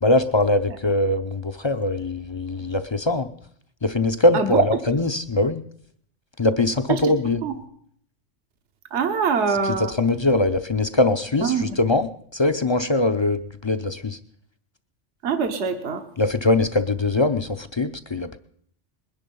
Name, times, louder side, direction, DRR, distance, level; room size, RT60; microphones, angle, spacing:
voice 1, 0.0-3.3 3.8-5.6 6.4-7.4 10.0-14.2 16.2-18.4, left 2 dB, 35° left, 10 dB, 0.5 m, -22 dB
voice 2, 4.3-4.7 6.9-7.1 7.4-7.5 8.9-9.9 11.4-11.7 15.2-16.0, right 5 dB, 70° right, 6 dB, 1.4 m, -23 dB
20.5 x 10.5 x 5.4 m, 0.64 s
omnidirectional pair, 1.2 m